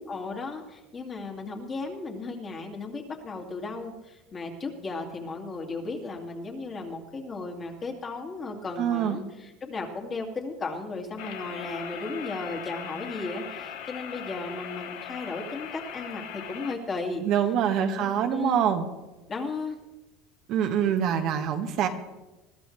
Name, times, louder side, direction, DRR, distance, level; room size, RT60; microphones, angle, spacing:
voice 1, 0.1-17.2 17.8-18.6 19.3-19.8, left 3 dB, 25° left, 1 dB, 2.3 m, -35 dB
voice 2, 8.8-9.2 17.2-18.8 20.5-21.9, right 9 dB, 55° right, 6 dB, 1.3 m, -25 dB
sound 1, 11.2-16.8, left 9 dB, 70° left, 1.3 m, -39 dB
21.0 x 14.0 x 3.3 m, 1.1 s
supercardioid pair, 130°, 0 cm